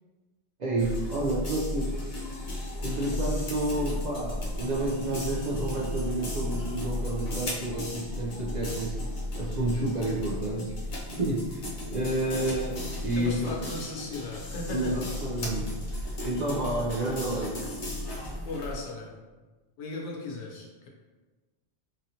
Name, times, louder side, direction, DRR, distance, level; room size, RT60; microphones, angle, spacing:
voice 1, 0.6-1.9 2.8-9.0 9.4-10.7 11.1-13.6 14.7-17.6, right 1 dB, 55° right, -4 dB, 0.5 m, -30 dB
sound 1, 0.8-18.7, left 1 dB, 45° left, 0.6 m, -34 dB
voice 2, 13.2-15.0 18.4-19.1 19.8-20.9, left 2 dB, 90° left, -1 dB, 0.9 m, -37 dB
3.0 x 2.7 x 2.7 m, 1.2 s
omnidirectional pair, 1.1 m